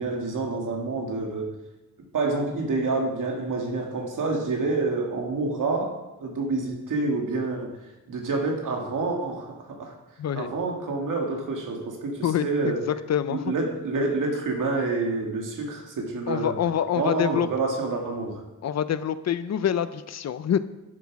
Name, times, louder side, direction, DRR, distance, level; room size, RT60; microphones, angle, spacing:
voice 1, 0.0-1.5 2.1-5.9 6.2-7.7 8.1-9.9 10.4-12.8 13.3-16.6 16.9-18.4, right 3 dB, 80° right, 1 dB, 2.1 m, -28 dB
voice 2, 12.2-13.5 16.3-17.5 18.6-20.6, left 9 dB, 55° left, 14 dB, 0.5 m, -26 dB
11.5 x 7.4 x 4.8 m, 0.99 s
wide cardioid pair, 180°, 31 cm